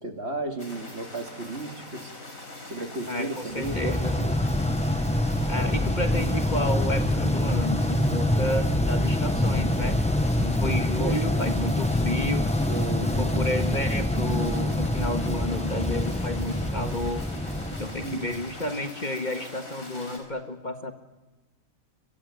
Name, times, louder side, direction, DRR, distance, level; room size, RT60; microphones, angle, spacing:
voice 1, 0.0-2.1 2.7-4.4 11.0-11.2 12.6-13.5 18.0-18.3, right 2 dB, 50° right, 5 dB, 2.4 m, -34 dB
sound 1, 0.6-20.2, left 2 dB, 75° left, 5.7 m, -42 dB
voice 2, 3.1-4.2 5.5-10.0 10.4-12.5 13.0-17.2 17.8-20.9, left 1 dB, 35° left, 7 dB, 1.7 m, -31 dB
sound 2, 3.6-18.6, left 1 dB, 5° left, 0.9 m, -25 dB
23.5 x 22.5 x 9.5 m, 1.1 s
omnidirectional pair, 1.4 m